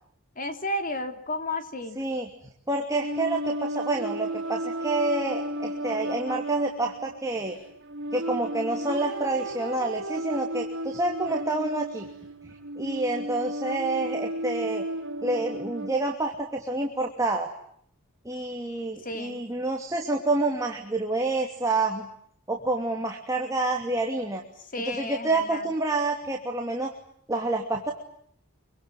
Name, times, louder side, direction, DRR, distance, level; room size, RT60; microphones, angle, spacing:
voice 1, 0.4-2.0 19.0-19.4 24.7-25.7, left 1 dB, 40° left, 7 dB, 3.2 m, -32 dB
voice 2, 2.0-2.3 2.7-7.6 8.1-12.1 12.4-14.8 15.2-17.5 18.2-22.1 22.5-24.4 24.9-26.9 27.3-27.9, right 2 dB, 15° right, 2 dB, 2.8 m, -28 dB
sound 1, 3.0-15.9, right 1 dB, 60° right, 3.8 m, -34 dB
26.0 x 24.5 x 9.4 m, 0.68 s
head